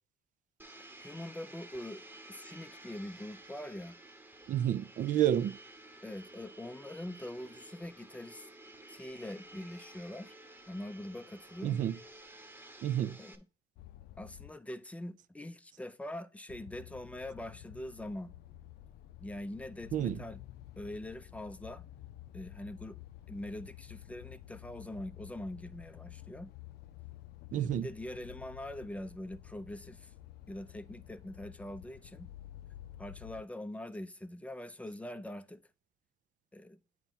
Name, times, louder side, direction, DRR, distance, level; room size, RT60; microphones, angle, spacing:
Domestic sounds home sounds, 0.6-13.3, right 1 dB, 10° right, 1.0 m, -53 dB
voice 1, 1.0-4.0 6.0-8.5 8.9-10.3 10.7-11.8 13.2-13.5 14.2-18.3 19.2-20.4 20.8-21.8 22.3-23.0 23.3-26.5 27.5-30.1 30.5-32.3 33.0-35.6 36.5-36.8, left 1 dB, 10° left, 0.5 m, -43 dB
voice 2, 4.5-5.6 11.6-12.0 12.8-13.2 19.9-20.2 27.5-27.9, right 11 dB, 50° right, 0.4 m, -30 dB
sound 1, 13.8-14.5 16.5-33.4, left 14 dB, 75° left, 0.5 m, -51 dB
8.8 x 3.1 x 5.4 m
cardioid pair, 110°, 17 cm